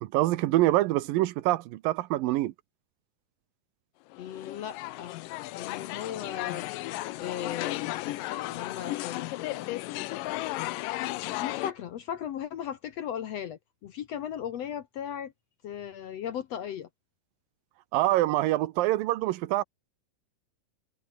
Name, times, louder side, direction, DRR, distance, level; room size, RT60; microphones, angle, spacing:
voice 1, 0.0-2.5 17.9-19.6, right 16 dB, 90° right, 2.6 m, -25 dB
sound 1, 4.1-11.7, left 18 dB, 80° left, 2.3 m, -34 dB
voice 2, 4.2-5.1 5.5-9.8 11.3-15.3 15.6-16.9, left 9 dB, 65° left, 1.8 m, -37 dB
omnidirectional pair, 4.0 m